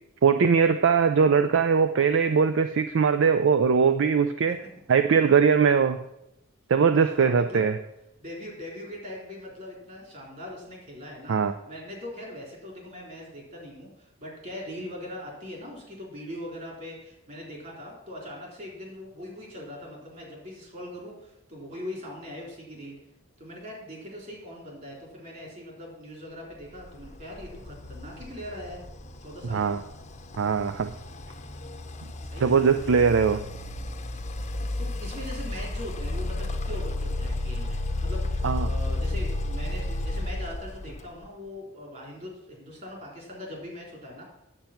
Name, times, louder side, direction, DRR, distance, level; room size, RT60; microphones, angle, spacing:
voice 1, 0.2-4.6 4.9-6.0 6.7-7.8 11.3-11.5 29.5-29.8 30.4-30.9 32.4-33.4 38.4-38.7, right 6 dB, 60° right, 9 dB, 0.4 m, -21 dB
voice 2, 6.9-7.7 8.2-11.4 11.7-23.0 23.4-28.8 29.2-29.8 32.3-33.2 34.5-44.2, left 1 dB, 40° right, -1 dB, 3.7 m, -41 dB
sound 1, 26.8-41.3, left 2 dB, 35° left, 0.8 m, -33 dB
8.8 x 7.8 x 5.8 m, 0.83 s
head